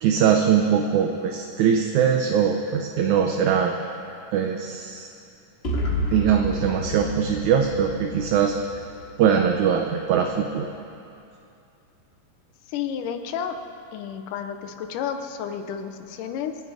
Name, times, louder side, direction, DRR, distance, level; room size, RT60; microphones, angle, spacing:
voice 1, 0.0-3.7 4.3-5.1 6.1-8.6 9.2-10.7, right 8 dB, 75° right, 3 dB, 1.9 m, -21 dB
sound 1, 5.6-9.5, equal, 50° left, 0.7 m, -30 dB
voice 2, 12.7-13.6 13.9-16.6, left 8 dB, 80° left, 7 dB, 2.3 m, -31 dB
26.5 x 9.2 x 4.9 m, 2.6 s
omnidirectional pair, 3.8 m